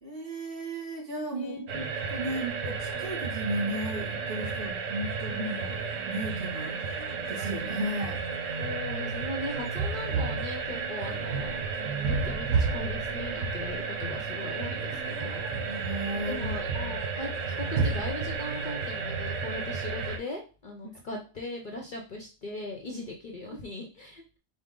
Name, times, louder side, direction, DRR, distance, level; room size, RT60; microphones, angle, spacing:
voice 1, 0.0-1.8 2.1-8.2 15.7-16.6, right 1 dB, 45° right, -3 dB, 2.1 m, -35 dB
voice 2, 1.3-1.7 8.6-15.4 16.1-24.2, left 2 dB, 50° left, 1 dB, 0.7 m, -39 dB
sound 1, 1.7-20.2, right 4 dB, 80° right, 1.1 m, -32 dB
5.0 x 2.2 x 3.7 m, 0.33 s
omnidirectional pair, 1.3 m